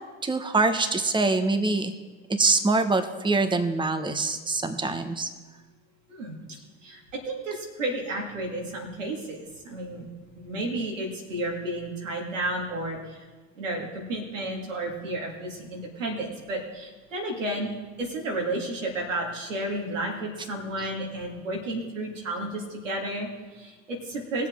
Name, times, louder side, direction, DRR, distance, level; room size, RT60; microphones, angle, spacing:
voice 1, 0.2-2.0 2.3-5.3, right 3 dB, 15° right, 8 dB, 1.1 m, -24 dB
voice 2, 6.8-10.1 10.4-13.3 13.6-24.5, right 1 dB, 85° right, 0 dB, 2.3 m, -32 dB
19.5 x 7.4 x 3.7 m, 1.3 s
hypercardioid pair, 65°, 37 cm